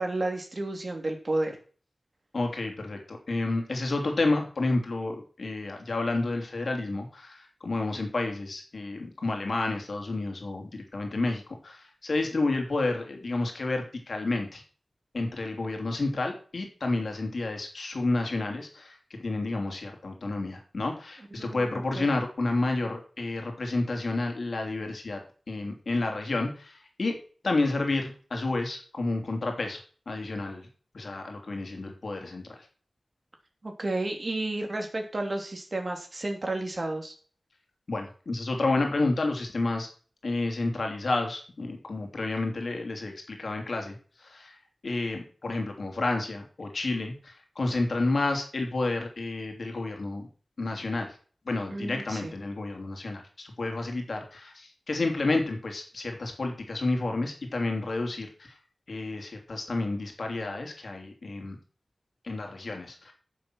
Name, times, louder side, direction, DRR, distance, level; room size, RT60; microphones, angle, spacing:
voice 1, 0.0-1.6 21.4-22.0 33.6-37.1 51.7-52.3, right 2 dB, 50° right, 3 dB, 3.1 m, -32 dB
voice 2, 2.3-14.6 15.1-25.2 25.5-29.8 30.1-30.7 30.9-32.7 37.9-39.9 40.2-44.6 44.8-50.3 50.6-51.2 51.4-58.6 58.9-61.6 62.2-63.1, left 2 dB, 75° left, 3 dB, 2.9 m, -30 dB
11.0 x 6.9 x 6.2 m, 0.41 s
wide cardioid pair, 55°, 0 cm